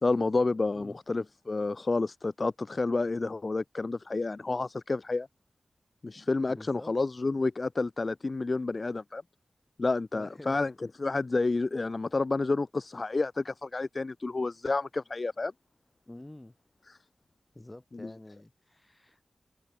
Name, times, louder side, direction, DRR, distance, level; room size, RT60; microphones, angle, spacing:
voice 1, 0.0-5.3 6.0-9.2 9.8-10.7 11.0-15.5 16.9-17.0 17.9-18.1, left 3 dB, 40° left, 0.3 m, -30 dB
voice 2, 6.4-6.9 10.1-10.6 16.1-16.6 17.5-19.3, left 1 dB, 20° left, 4.5 m, -48 dB
wide cardioid pair, 100°, 0 cm